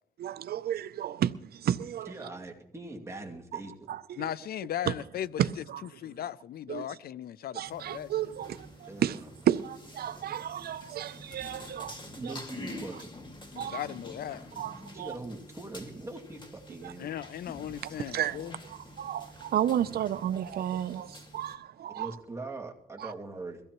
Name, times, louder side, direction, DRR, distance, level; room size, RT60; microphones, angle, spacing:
voice 1, 0.2-2.1 3.5-3.6 3.9-4.2 4.9-5.0 5.4-5.8 6.7-6.8 7.5-12.0 12.2-12.3 12.9-13.0 13.6-13.8 14.6-15.2 16.8-16.9 17.8-22.2 23.0-23.1, right 10 dB, 75° right, 0.5 m, -32 dB
voice 2, 2.1-3.7 8.9-9.1 12.2-13.1 14.9-17.1 21.9-23.6, right 2 dB, 15° right, 2.3 m, -41 dB
voice 3, 4.2-5.3 5.9-8.3 11.4-11.5 13.5-14.4 17.0-18.6, left 11 dB, 70° left, 0.4 m, -37 dB
sound 1, 7.7-21.5, left 1 dB, 30° left, 2.0 m, -47 dB
22.5 x 15.5 x 3.0 m
cardioid pair, 110°, 16 cm